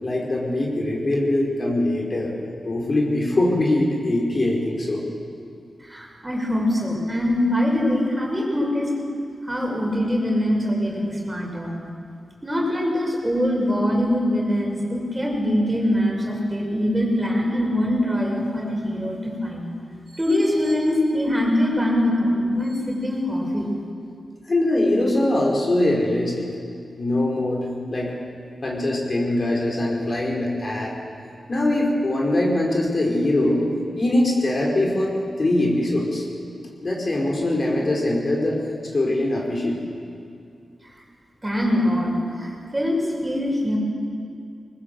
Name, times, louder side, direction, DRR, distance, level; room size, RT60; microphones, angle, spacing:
voice 1, 0.0-2.3 2.6-5.0 24.5-26.5 27.0-28.2 28.6-31.0 31.5-33.6 33.9-36.3 36.8-38.6 38.9-39.8, left 1 dB, 45° left, -2 dB, 4.9 m, -22 dB
voice 2, 5.8-8.9 9.4-11.7 12.4-19.7 20.1-23.7 41.4-43.8, left 1 dB, 20° right, -1 dB, 6.1 m, -23 dB
20.5 x 19.5 x 7.9 m, 2.4 s
cardioid pair, 60°, 0 cm